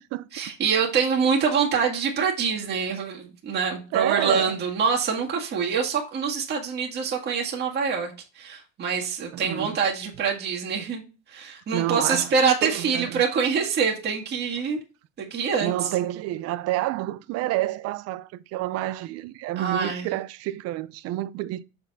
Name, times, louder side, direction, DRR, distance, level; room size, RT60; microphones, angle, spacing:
voice 1, 0.3-14.8 15.2-15.9 19.6-20.1, right 6 dB, 30° right, 1.8 m, -25 dB
voice 2, 3.9-4.5 9.3-9.8 11.7-12.3 12.6-13.2 15.6-21.7, right 15 dB, 50° right, 0.5 m, -29 dB
7.0 x 4.4 x 4.0 m
cardioid pair, 145°, 32 cm